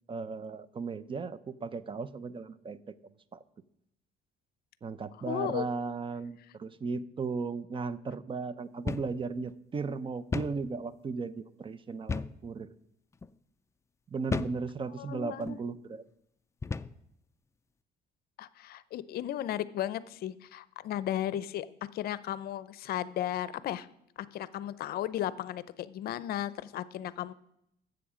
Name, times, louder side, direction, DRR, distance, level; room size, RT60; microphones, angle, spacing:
voice 1, 0.1-2.9 3.3-3.4 4.8-12.7 14.1-16.0, right 4 dB, 30° right, 16 dB, 0.6 m, -36 dB
voice 2, 5.3-5.7 15.0-15.6 18.4-21.7 21.9-23.9 24.3-27.3, left 12 dB, 65° left, 17 dB, 0.6 m, -35 dB
sound 1, 8.9-9.2 9.5-9.6 10.3-10.6 12.1-12.4 13.1-13.3 14.3-14.6 15.4-15.6 16.6-17.0, left 4 dB, 15° left, 0.3 m, -34 dB
12.5 x 7.9 x 5.0 m, 0.75 s
cardioid pair, 110°, 17 cm